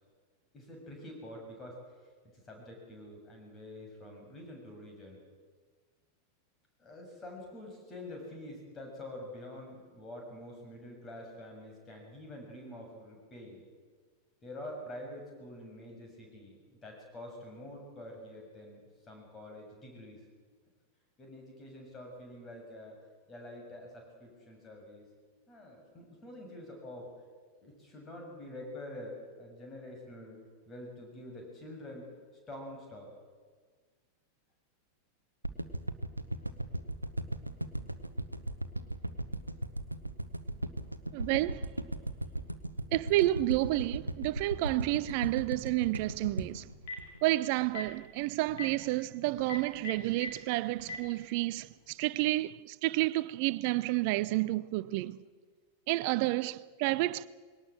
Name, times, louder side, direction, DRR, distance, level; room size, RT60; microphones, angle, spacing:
voice 1, 0.5-1.8 2.3-5.2 6.8-13.6 14.4-18.8 19.1-20.2 21.2-23.0 23.3-25.0 25.5-27.1 27.6-30.4 30.7-32.1 32.5-33.1, left 1 dB, 20° left, 6.9 m, -46 dB
sound 1, 35.4-47.8 48.2-48.3, right 1 dB, 85° right, 0.9 m, -37 dB
voice 2, 41.1-41.7 42.9-46.7 47.2-55.2 55.9-57.3, right 18 dB, 45° right, 0.6 m, -30 dB
Telephone, 46.6-47.1 47.6-47.9 48.5-48.7 49.4-50.3 50.8-51.0, left 3 dB, 55° left, 5.6 m, -38 dB
21.0 x 18.5 x 7.6 m
figure-of-eight pair, 90°, 0 cm